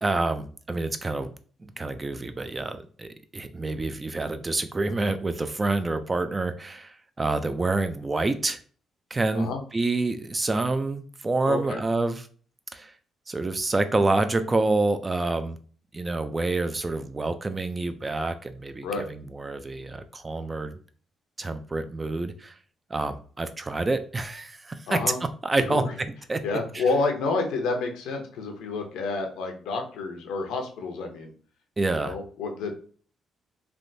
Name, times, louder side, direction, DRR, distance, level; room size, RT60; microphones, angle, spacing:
voice 1, 0.0-1.3 1.8-8.6 9.1-12.2 12.7-12.9 13.3-15.6 15.9-20.8 21.4-22.5 22.9-25.0 25.4-25.9 26.3-26.4 26.7-26.8 31.8-32.1, right 2 dB, 25° right, 10 dB, 0.3 m, -27 dB
voice 2, 11.4-11.8 18.8-19.0 24.9-25.2 25.6-25.9 26.4-31.3 31.9-32.7, left 3 dB, 90° left, 4 dB, 0.7 m, -29 dB
3.4 x 2.5 x 2.6 m, 0.43 s
cardioid pair, 90°, 0 cm